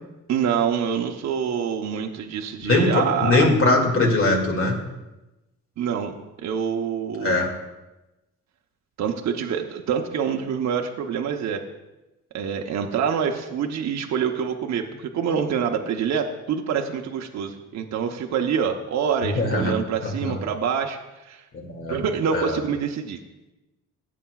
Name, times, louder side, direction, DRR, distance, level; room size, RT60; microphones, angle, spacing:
voice 1, 0.3-3.5 5.8-7.4 9.0-11.6 12.3-21.4 21.9-23.2, right 7 dB, 65° right, 3 dB, 0.8 m, -26 dB
voice 2, 2.6-4.8 7.2-7.5 19.4-19.8 20.0-20.4 21.5-22.0 22.3-22.6, left 2 dB, 45° left, 1 dB, 2.2 m, -21 dB
16.0 x 8.4 x 2.3 m, 1.0 s
cardioid pair, 90°, 30 cm